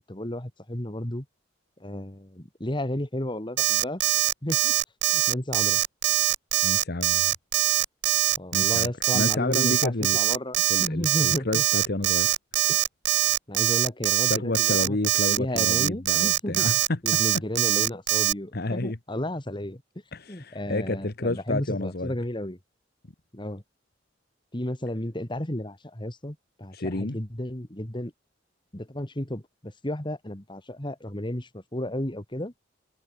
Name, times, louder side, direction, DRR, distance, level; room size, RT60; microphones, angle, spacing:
voice 1, 0.1-1.3 1.8-4.1 4.4-4.7 5.1-5.8 8.4-11.6 12.7-12.8 13.5-15.0 15.3-16.7 17.0-19.8 20.3-22.6 23.3-23.6 24.5-28.1 28.7-32.5, left 1 dB, 25° left, 2.6 m, -33 dB
Alarm, 3.6-18.3, right 15 dB, 60° right, 0.5 m, -23 dB
voice 2, 6.6-7.3 8.5-10.2 10.7-12.3 14.2-17.4 18.5-19.0 20.1-22.1 26.7-27.2, left 2 dB, 55° left, 1.4 m, -30 dB
head